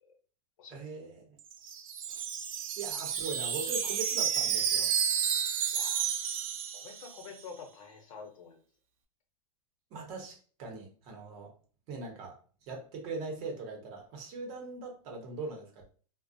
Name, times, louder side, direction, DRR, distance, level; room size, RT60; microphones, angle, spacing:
voice 1, 0.7-1.4 2.1-2.2 2.8-4.9 9.9-11.5 11.9-15.8, right 3 dB, 35° right, 1 dB, 0.7 m, -41 dB
Wind chime, 1.4-7.4, right 8 dB, 75° right, 0.5 m, -31 dB
voice 2, 5.7-6.1 6.7-8.6, left 5 dB, 65° left, 3 dB, 0.8 m, -48 dB
2.4 x 2.1 x 2.5 m, 0.41 s
supercardioid pair, 155°, 18 cm